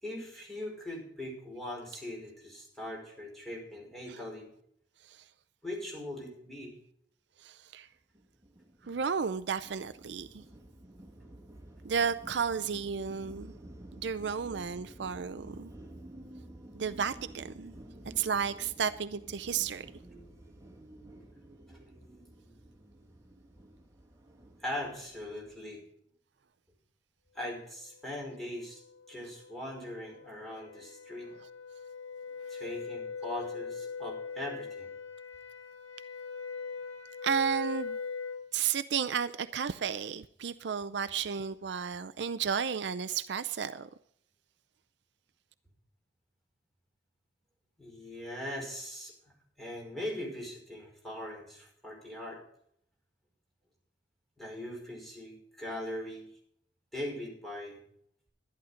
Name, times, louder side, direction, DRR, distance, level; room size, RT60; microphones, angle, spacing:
voice 1, 0.0-4.5 5.6-6.7 21.7-21.8 24.6-25.9 27.3-28.8 29.1-31.3 32.5-34.9 47.8-49.1 49.6-52.4 54.4-56.3 56.9-57.8, left 1 dB, ahead, 5.2 m, -40 dB
voice 2, 7.4-7.9 8.9-10.4 11.8-13.5 14.0-15.7 16.7-17.7 18.2-19.9 37.2-38.0 38.5-43.9, right 6 dB, 65° right, 0.5 m, -33 dB
sound 1, 8.1-25.6, right 1 dB, 20° right, 2.3 m, -51 dB
sound 2, 28.6-38.5, left 5 dB, 70° left, 2.0 m, -41 dB
12.0 x 11.5 x 5.1 m
head